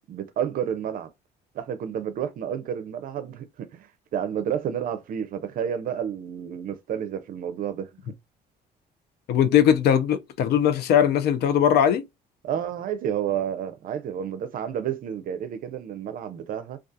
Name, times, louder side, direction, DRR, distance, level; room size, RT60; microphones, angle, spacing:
voice 1, 0.1-1.1 1.5-7.9 12.4-16.8, right 9 dB, 55° right, 0.5 m, -30 dB
voice 2, 9.3-12.1, left 9 dB, 70° left, 0.6 m, -20 dB
2.3 x 2.3 x 2.6 m
cardioid pair, 110°, 17 cm